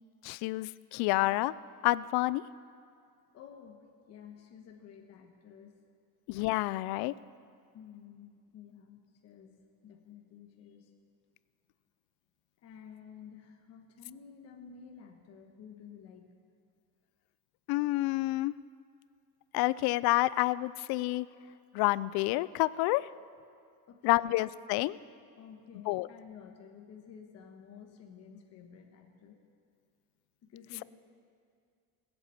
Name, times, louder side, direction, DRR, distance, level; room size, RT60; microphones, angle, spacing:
voice 1, 0.2-1.5 1.8-2.4 6.3-7.1 17.7-18.5 19.5-21.3 21.7-23.1 24.0-25.0 25.9-26.1, left 19 dB, 90° left, 19 dB, 0.5 m, -29 dB
voice 2, 3.3-5.7 7.7-9.0 9.2-9.6 9.8-10.9 12.6-16.3 23.9-24.4 25.3-29.4 30.4-30.8, left 7 dB, 45° left, 2 dB, 1.3 m, -52 dB
19.0 x 8.0 x 8.4 m, 2.3 s
cardioid pair, 170°, 36 cm